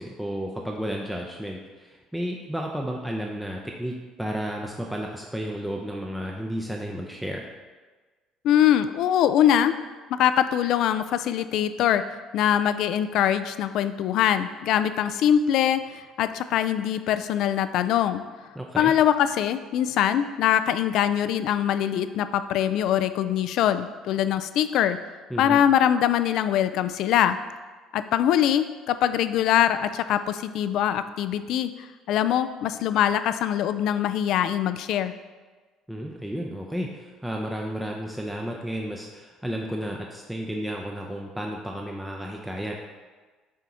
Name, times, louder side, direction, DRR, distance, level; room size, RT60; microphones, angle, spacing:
voice 1, 0.0-7.4 18.5-18.9 25.3-25.6 35.9-42.8, equal, 5° right, 0 dB, 0.6 m, -32 dB
voice 2, 8.4-9.8 10.1-18.2 18.8-25.0 25.4-27.4 27.9-31.7 32.1-35.1, left 10 dB, 65° left, 12 dB, 0.3 m, -23 dB
7.6 x 2.8 x 4.7 m, 1.3 s
cardioid pair, 105°, 0 cm